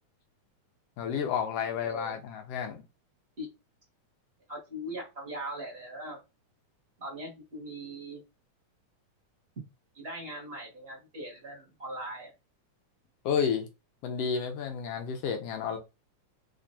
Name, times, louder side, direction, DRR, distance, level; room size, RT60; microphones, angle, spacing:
voice 1, 1.0-2.8 13.2-13.7 14.0-15.8, left 7 dB, 75° left, 1.5 m, -31 dB
voice 2, 1.8-2.2 3.4-3.5 4.5-6.2 7.0-8.2 9.9-12.3, right 1 dB, 30° right, 1.2 m, -40 dB
4.5 x 2.9 x 2.6 m
omnidirectional pair, 3.4 m